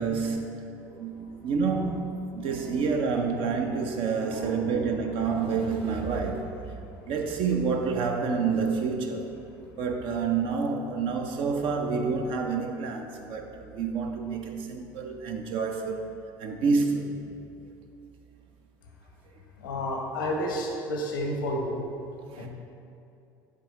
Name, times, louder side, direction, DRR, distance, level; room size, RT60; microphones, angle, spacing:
voice 1, 0.0-6.5 7.1-9.3 9.8-17.2 22.3-22.5, right 5 dB, 55° right, 0.6 m, -28 dB
voice 2, 0.8-1.4 2.6-2.8 4.2-5.0 19.6-21.8 22.4-22.5, left 1 dB, 85° left, 0.9 m, -32 dB
7.6 x 3.5 x 3.7 m
hypercardioid pair, 75°, 11 cm